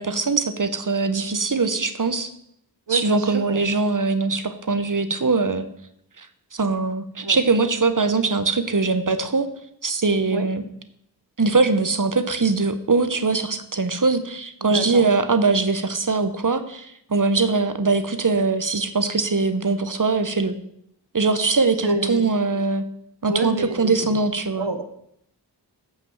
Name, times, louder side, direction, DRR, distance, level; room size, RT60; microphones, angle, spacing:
voice 1, 0.0-2.3 2.9-5.7 6.2-6.3 6.5-9.5 9.8-10.6 11.4-20.5 21.1-22.8 23.2-24.7, right 3 dB, 50° right, 10 dB, 1.0 m, -22 dB
voice 2, 2.9-3.6 7.2-7.4 10.3-10.5 14.6-15.1 21.8-22.2 22.5-22.6 23.3-24.2 24.6-24.8, right 3 dB, 85° right, 8 dB, 1.2 m, -27 dB
7.8 x 6.0 x 7.3 m, 0.73 s
wide cardioid pair, 45°, 42 cm